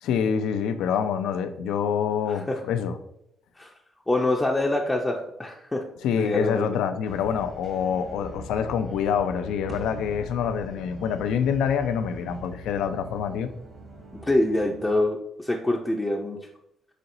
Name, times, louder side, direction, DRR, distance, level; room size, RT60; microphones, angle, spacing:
voice 1, 0.0-3.0 6.0-13.5, left 7 dB, 85° left, 10 dB, 0.3 m, -26 dB
voice 2, 2.3-2.6 3.6-3.7 4.1-5.8 6.1-6.7 14.2-16.4, left 2 dB, 15° left, 0 dB, 0.4 m, -25 dB
sound 1, 7.1-15.0, right 1 dB, 60° right, 1.1 m, -44 dB
sound 2, 9.7-12.2, right 3 dB, 40° right, 0.5 m, -43 dB
4.2 x 3.8 x 2.6 m, 0.78 s
cardioid pair, 90°, 0 cm